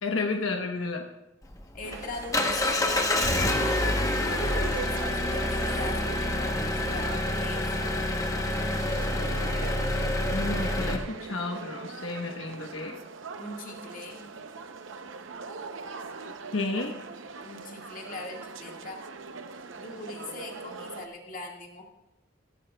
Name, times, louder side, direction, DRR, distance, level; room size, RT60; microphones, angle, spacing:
voice 1, 0.0-1.1 10.3-13.0 16.5-16.9, left 3 dB, 80° left, 2 dB, 1.1 m, -31 dB
Engine, 1.4-11.0, left 1 dB, 15° left, 1.0 m, -27 dB
voice 2, 1.7-7.7 13.4-14.4 17.4-19.0 19.8-21.8, left 2 dB, 45° left, 0 dB, 1.8 m, -41 dB
sound 1, 1.8-21.1, right 4 dB, 65° right, 0.7 m, -41 dB
16.0 x 13.5 x 2.3 m, 0.91 s
head